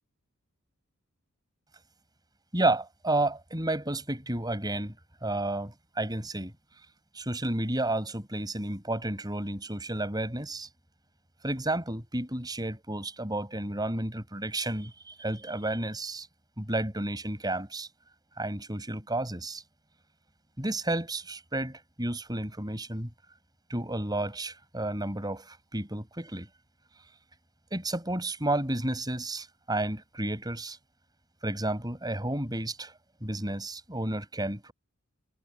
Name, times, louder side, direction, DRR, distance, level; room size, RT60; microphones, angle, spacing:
voice 1, 2.5-5.0 5.2-6.5 7.1-10.7 11.4-16.3 16.6-17.9 18.4-19.6 20.6-23.1 23.7-26.5 27.7-30.8 31.4-32.9 33.2-34.7, right 1 dB, 20° right, 7.0 m, -31 dB
head